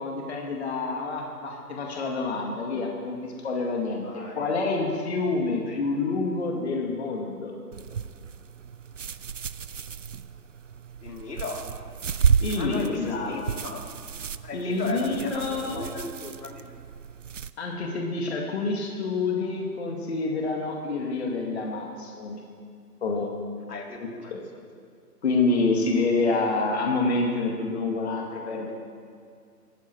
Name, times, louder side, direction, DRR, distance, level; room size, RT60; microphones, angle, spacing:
voice 1, 0.0-4.1 4.3-7.6 12.4-13.4 14.5-15.9 17.6-22.4 23.0-23.3 24.0-24.4 25.2-28.7, left 3 dB, 40° left, 0 dB, 2.2 m, -27 dB
voice 2, 4.0-4.5 5.7-5.8 11.0-11.7 12.5-13.9 14.4-16.8 23.7-24.3, left 3 dB, 70° left, 2 dB, 2.8 m, -37 dB
sound 1, 7.7-17.5, right 6 dB, 55° right, 0.5 m, -31 dB
22.0 x 14.0 x 4.6 m, 2.2 s
hypercardioid pair, 165°, 49 cm